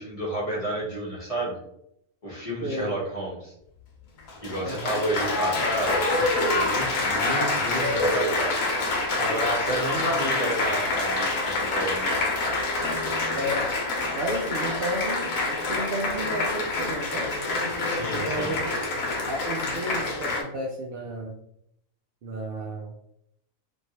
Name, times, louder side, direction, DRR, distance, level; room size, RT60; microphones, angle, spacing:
voice 1, 0.0-1.6 2.2-3.5 4.4-6.1 6.5-8.6 9.2-12.1 17.8-18.5, right 1 dB, 30° left, -5 dB, 0.8 m, -31 dB
voice 2, 2.6-2.9 4.6-5.0 9.8-10.2 13.3-13.7 14.2-17.3 18.1-18.8 19.3-21.4 22.2-22.9, right 1 dB, 65° right, -1 dB, 0.5 m, -32 dB
Applause, 4.2-20.4, left 2 dB, 75° left, 1.2 m, -26 dB
3.0 x 2.6 x 2.8 m, 0.76 s
omnidirectional pair, 1.4 m